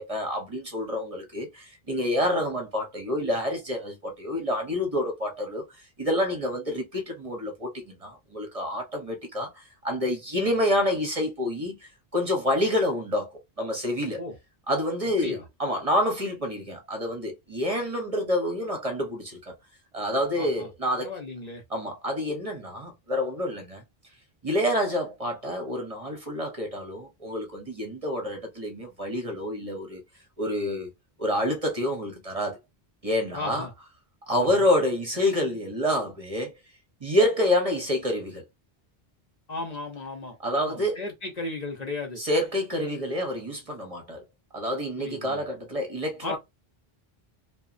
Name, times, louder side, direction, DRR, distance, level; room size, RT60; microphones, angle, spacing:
voice 1, 0.0-13.3 13.6-14.2 14.7-19.5 19.9-21.1 21.7-23.8 24.4-30.0 30.4-30.9 31.2-32.6 33.0-33.7 34.3-36.5 37.0-38.4 40.4-41.0 42.2-44.2 44.5-46.4, left 1 dB, 40° right, 0.8 m, -28 dB
voice 2, 20.4-20.7 21.0-21.6 33.3-33.7 34.4-34.6 39.5-42.2 45.0-45.4 46.2-46.4, left 3 dB, 45° left, 0.8 m, -36 dB
2.9 x 2.1 x 2.4 m
omnidirectional pair, 1.0 m